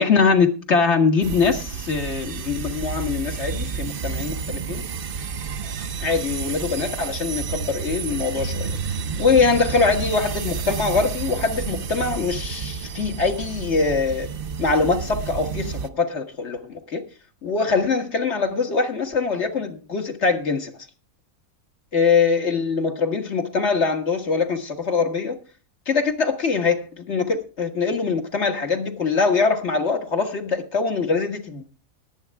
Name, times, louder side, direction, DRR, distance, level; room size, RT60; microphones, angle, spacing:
voice 1, 0.0-4.8 6.0-8.7 9.2-14.3 14.6-17.0 17.4-20.7 21.9-25.4 25.9-31.6, left 4 dB, 55° left, 1.8 m, -23 dB
sound 1, 1.2-15.9, right 6 dB, 50° right, 0.8 m, -30 dB
19.5 x 8.2 x 3.5 m
omnidirectional pair, 1.5 m